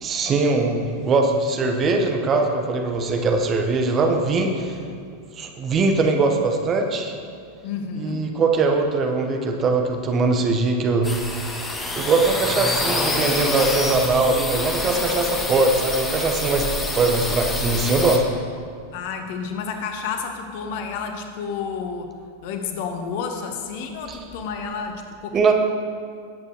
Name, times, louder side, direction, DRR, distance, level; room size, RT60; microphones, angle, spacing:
voice 1, 0.0-4.8 5.4-7.1 8.0-11.1 11.9-16.7 16.9-18.2 24.1-24.2 25.3-25.5, right 3 dB, 25° right, 3 dB, 1.3 m, -21 dB
voice 2, 7.6-8.3 18.9-22.1 22.4-25.5, left 6 dB, 50° left, 5 dB, 1.1 m, -30 dB
sound 1, 11.0-18.2, left 2 dB, 15° left, 1.4 m, -26 dB
18.0 x 8.4 x 3.2 m, 2.2 s
figure-of-eight pair, 90°, 0 cm